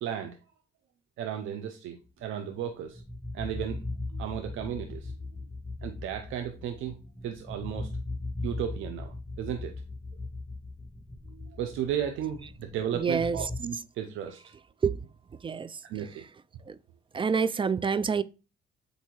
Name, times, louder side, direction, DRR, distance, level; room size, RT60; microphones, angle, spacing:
voice 1, 0.0-0.4 1.2-3.0 3.3-3.8 4.1-5.1 5.8-7.0 7.2-7.9 8.4-9.7 11.3-14.4 15.9-16.2, right 9 dB, 85° right, 0.8 m, -34 dB
sound 1, 2.5-13.6, left 2 dB, 5° left, 1.3 m, -39 dB
voice 2, 12.9-13.5 14.8-15.1 15.4-15.8 16.7-16.8 17.1-18.2, right 6 dB, 25° right, 0.4 m, -27 dB
8.0 x 2.7 x 4.7 m
cardioid pair, 90°, 20 cm